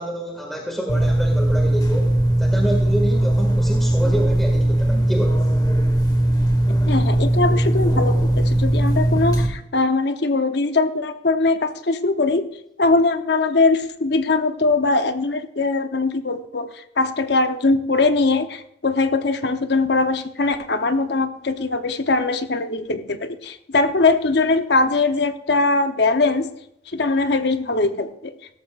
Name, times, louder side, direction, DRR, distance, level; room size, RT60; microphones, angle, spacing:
voice 1, 0.0-2.1 2.4-5.4, right 1 dB, ahead, 0 dB, 1.9 m, -28 dB
sound 1, 0.9-9.5, right 1 dB, 20° left, 1.3 m, -19 dB
voice 2, 6.9-12.4 12.8-26.5 26.9-28.3, left 3 dB, 65° left, 9 dB, 0.8 m, -21 dB
17.0 x 13.5 x 2.4 m, 0.77 s
head